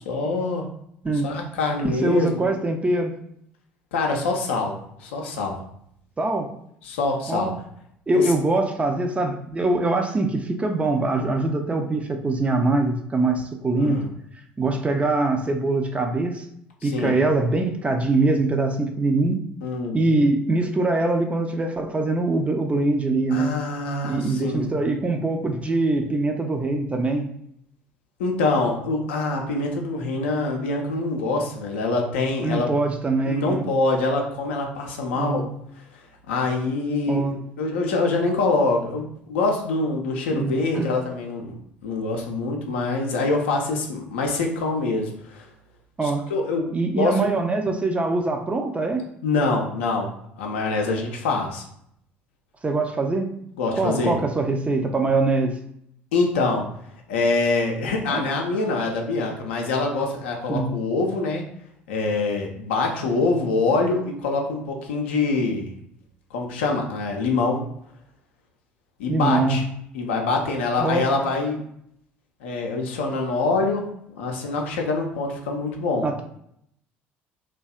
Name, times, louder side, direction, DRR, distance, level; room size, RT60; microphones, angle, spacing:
voice 1, 0.1-0.6 1.2-2.5 3.9-4.7 5.0-5.6 6.8-7.5 8.1-8.3 13.8-14.1 16.8-17.2 19.6-20.0 23.3-24.7 28.2-32.7 33.3-35.4 36.3-41.5 41.8-45.4 46.0-47.2 49.2-51.6 53.6-54.2 56.1-56.6 57.1-61.4 61.9-65.7 66.3-67.6 69.0-69.6 69.9-71.6 72.4-73.9 74.2-76.1, left 3 dB, 75° left, 1 dB, 0.5 m, -25 dB
voice 2, 1.8-3.1 6.2-6.5 7.3-7.5 8.1-14.0 14.6-16.4 16.8-19.4 19.9-23.5 24.0-27.3 32.4-33.7 35.1-35.5 37.1-37.4 40.3-41.0 46.0-46.3 46.7-49.1 52.6-53.3 53.8-55.6 58.1-58.2 60.5-60.7 69.1-69.6 70.8-71.0 76.0-76.2, right 2 dB, 20° right, 5 dB, 0.4 m, -23 dB
2.6 x 2.2 x 2.3 m, 0.72 s
hypercardioid pair, 60°, 6 cm